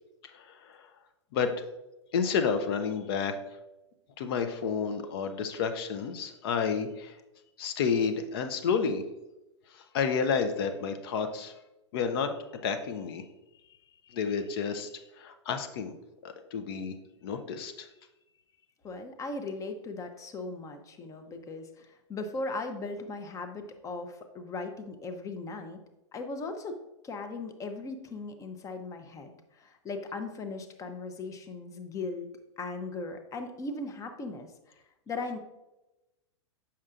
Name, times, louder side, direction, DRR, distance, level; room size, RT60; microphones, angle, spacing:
voice 1, 0.3-0.8 1.3-1.6 2.1-3.3 4.2-7.2 7.6-9.0 9.7-11.5 11.9-12.3 12.6-13.2 14.1-14.9 15.2-15.9 16.2-16.9 17.2-17.9, left 6 dB, 50° left, 8 dB, 0.7 m, -30 dB
voice 2, 18.8-25.8 26.1-26.8 27.0-32.3 32.6-34.5 35.1-35.4, left 3 dB, 20° left, 7 dB, 0.7 m, -38 dB
7.4 x 5.8 x 2.5 m, 0.97 s
figure-of-eight pair, 100°, 16 cm